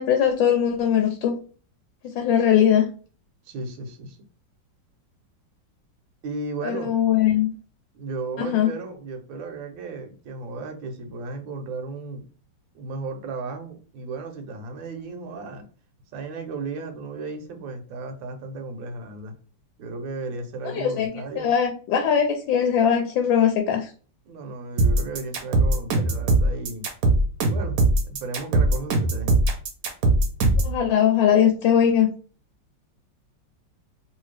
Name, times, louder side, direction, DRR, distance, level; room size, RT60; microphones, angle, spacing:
voice 1, 0.0-1.4 2.1-2.9 6.6-7.5 8.4-8.7 20.6-21.1 21.4-23.9 30.6-32.1, left 9 dB, 90° left, 5 dB, 1.3 m, -20 dB
voice 2, 3.4-4.2 6.2-6.9 7.9-12.2 12.7-15.6 16.1-19.3 19.8-21.5 24.3-26.9 27.4-27.8 28.0-29.3, right 3 dB, 85° right, 4 dB, 1.5 m, -34 dB
sound 1, 24.8-30.8, right 2 dB, 60° right, 1.1 m, -20 dB
3.2 x 2.7 x 3.2 m, 0.40 s
omnidirectional pair, 2.0 m